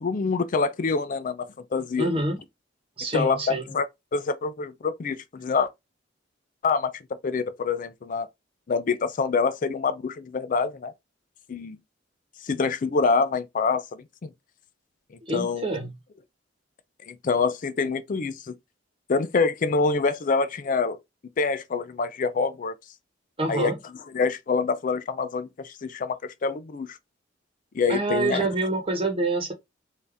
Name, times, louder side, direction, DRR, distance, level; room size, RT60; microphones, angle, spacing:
voice 1, 0.0-2.1 3.1-3.9 4.1-5.7 6.6-6.9 7.2-8.3 8.7-10.9 11.5-11.8 12.4-13.8 14.2-14.3 15.3-15.8 17.1-18.6 19.1-21.0 21.4-22.7 23.5-23.7 24.1-27.0 27.7-28.5, left 4 dB, 45° left, 0.4 m, -26 dB
voice 2, 2.0-2.4 3.0-3.6 15.2-15.9 23.4-23.8 27.9-29.5, right 2 dB, 30° right, 1.1 m, -26 dB
3.6 x 2.6 x 3.4 m
head